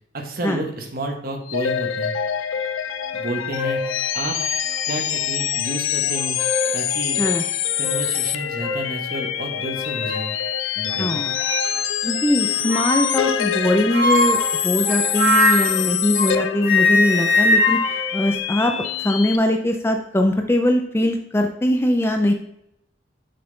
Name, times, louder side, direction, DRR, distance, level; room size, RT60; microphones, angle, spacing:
voice 1, 0.1-2.1 3.1-3.8 4.1-4.4 4.9-6.4 6.7-7.2 7.8-10.4 10.8-11.3, right 2 dB, 50° right, 2 dB, 1.0 m, -30 dB
sound 1, 1.5-19.4, left 9 dB, 90° left, 0.4 m, -25 dB
sound 2, 3.1-3.2 3.6-4.0 4.7-4.8 6.1-6.8 7.2-7.4 7.8-8.0 8.6-8.9 9.6-10.3 11.3-11.7 12.7-13.3 13.9-16.4 16.6-19.0, left 2 dB, 15° right, 1.4 m, -22 dB
voice 2, 11.0-11.3 12.0-18.7 19.0-22.3, left 1 dB, 10° left, 4 dB, 0.4 m, -21 dB
6.6 x 4.1 x 3.8 m, 0.77 s
head